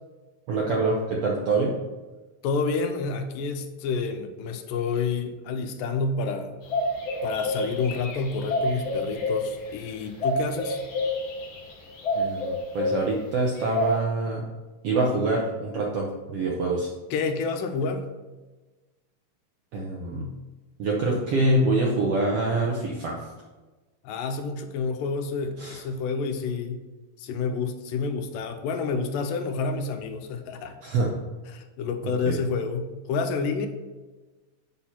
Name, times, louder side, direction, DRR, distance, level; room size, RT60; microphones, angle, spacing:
voice 1, 0.5-1.8 12.1-14.4 14.8-16.9 19.7-20.3 20.8-23.2 25.6-25.8 30.8-31.1 32.0-32.4, right 2 dB, 75° right, -2 dB, 1.4 m, -25 dB
voice 2, 2.4-6.6 7.2-10.8 17.1-18.1 24.0-26.8 27.2-30.8 31.5-33.7, left 4 dB, 90° left, 7 dB, 2.3 m, -29 dB
sound 1, 6.7-14.0, left 1 dB, 60° left, 1.4 m, -29 dB
7.5 x 4.2 x 5.8 m, 1.2 s
omnidirectional pair, 3.9 m